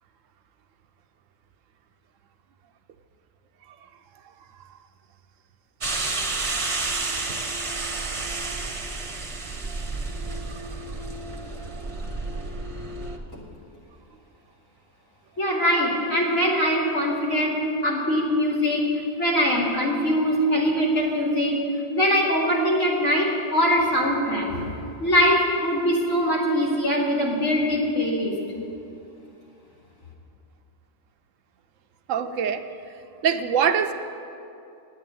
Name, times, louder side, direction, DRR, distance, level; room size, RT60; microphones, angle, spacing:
sound 1, 5.8-13.2, right 3 dB, 30° right, 0.8 m, -30 dB
voice 1, 15.4-18.9 19.2-21.6 21.9-24.7 25.0-28.3, equal, 80° left, -3 dB, 2.9 m, -22 dB
voice 2, 32.1-32.6 33.2-33.9, right 7 dB, 75° right, 9 dB, 1.0 m, -23 dB
9.5 x 8.7 x 9.2 m, 2.6 s
omnidirectional pair, 1.3 m